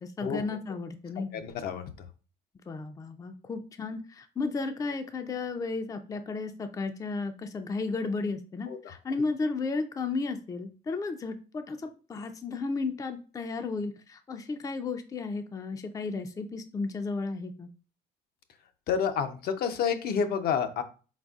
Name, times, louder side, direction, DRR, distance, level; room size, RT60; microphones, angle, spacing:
voice 1, 0.0-1.3 2.7-17.7, left 3 dB, 20° left, 8 dB, 0.4 m, -34 dB
voice 2, 1.3-1.8 8.7-8.8 18.9-20.8, left 7 dB, 65° left, 8 dB, 0.6 m, -29 dB
4.2 x 4.0 x 2.3 m, 0.36 s
cardioid pair, 110°, 17 cm